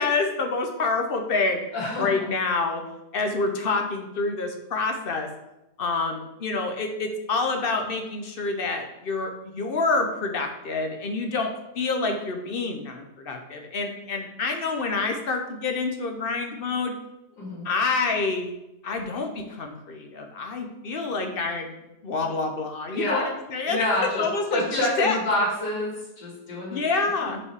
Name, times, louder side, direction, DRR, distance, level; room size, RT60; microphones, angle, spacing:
voice 1, 0.0-1.7 2.0-2.8 3.1-5.3 5.8-16.9 17.6-18.5 18.8-21.7 22.0-23.2 23.5-23.9 24.1-25.2 26.7-27.4, left 3 dB, 50° left, 4 dB, 0.7 m, -27 dB
voice 2, 1.7-2.2 17.4-17.6 22.9-23.3 23.7-24.2 24.5-26.8, left 1 dB, 75° left, -4 dB, 2.8 m, -27 dB
5.4 x 5.3 x 4.7 m, 0.91 s
omnidirectional pair, 1.8 m